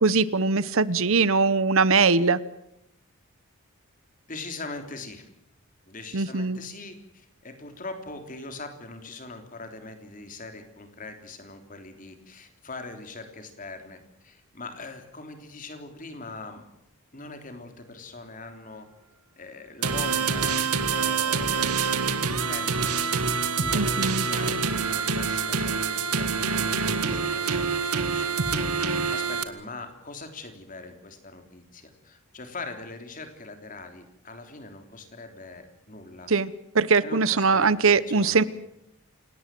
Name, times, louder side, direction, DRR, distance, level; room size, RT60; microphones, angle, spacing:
voice 1, 0.0-2.4 6.1-6.6 23.7-24.2 36.3-36.5 36.7-38.4, right 4 dB, 65° right, 17 dB, 0.9 m, -21 dB
voice 2, 4.3-5.3 5.9-16.6 17.1-18.9 19.4-21.9 22.3-23.0 23.6-28.4 29.1-36.3 37.0-38.4, left 3 dB, 35° left, 6 dB, 3.5 m, -42 dB
sound 1, 19.8-29.4, right 5 dB, 90° right, 2.0 m, -26 dB
28.5 x 18.0 x 7.7 m, 0.80 s
head